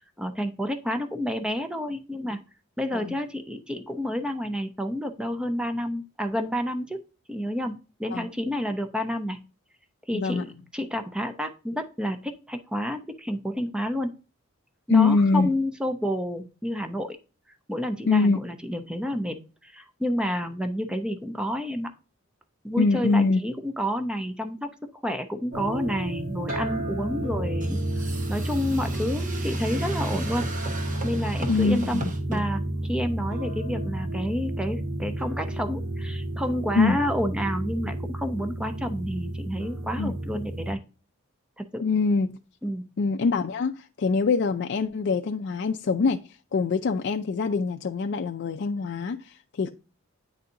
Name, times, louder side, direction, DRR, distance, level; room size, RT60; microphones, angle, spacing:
voice 1, 0.0-2.4 2.8-7.0 7.3-9.4 10.1-14.1 14.9-17.2 17.7-21.9 22.6-24.7 25.0-28.0 28.3-30.5 31.0-32.0 32.3-40.8 41.6-41.8 42.6-42.9, equal, 5° right, 0.6 m, -30 dB
voice 2, 10.1-10.4 14.9-15.5 18.1-18.4 22.8-23.4 31.5-32.0 36.8-37.0 40.0-40.1 41.8-42.4 43.0-46.2 46.5-49.7, left 4 dB, 50° left, 0.4 m, -24 dB
sound 1, 25.5-40.7, right 1 dB, 75° right, 1.8 m, -31 dB
sound 2, 27.6-32.4, right 1 dB, 35° right, 1.1 m, -37 dB
9.3 x 4.1 x 2.6 m
head